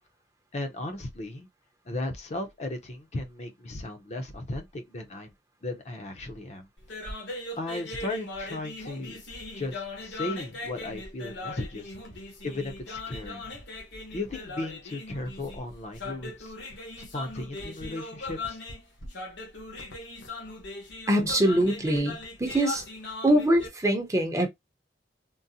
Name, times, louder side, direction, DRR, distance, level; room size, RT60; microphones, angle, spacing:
voice 1, 0.5-1.5 1.9-5.3 5.6-6.7 7.6-9.2 9.5-11.9 12.4-13.4 14.1-18.6, left 2 dB, 40° left, 0.6 m, -36 dB
sound 1, 6.8-23.7, left 2 dB, 85° left, 1.1 m, -39 dB
voice 2, 21.1-22.8 23.2-24.5, right 1 dB, 15° right, 0.7 m, -23 dB
3.8 x 2.0 x 2.7 m
head